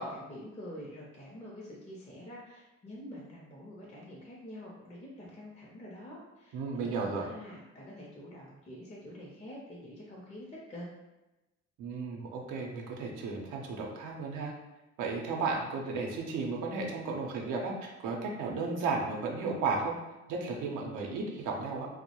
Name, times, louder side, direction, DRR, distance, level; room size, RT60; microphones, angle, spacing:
voice 1, 0.0-10.9, equal, 25° left, -4 dB, 0.5 m, -46 dB
voice 2, 6.5-7.3 11.8-14.5 15.0-20.0 20.3-21.9, right 4 dB, 85° right, 0 dB, 0.5 m, -34 dB
2.2 x 2.0 x 2.9 m, 1.0 s
cardioid pair, 90°, 30 cm